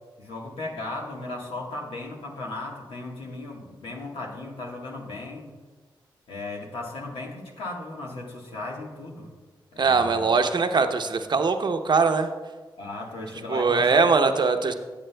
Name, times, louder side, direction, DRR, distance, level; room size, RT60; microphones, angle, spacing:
voice 1, 0.2-5.5 6.3-9.3 9.7-10.3 12.8-14.2, left 2 dB, 85° left, -1 dB, 1.4 m, -36 dB
voice 2, 9.8-12.3 13.5-14.7, right 4 dB, 55° right, 7 dB, 0.7 m, -21 dB
14.0 x 7.4 x 2.3 m, 1.3 s
cardioid pair, 45°, 9 cm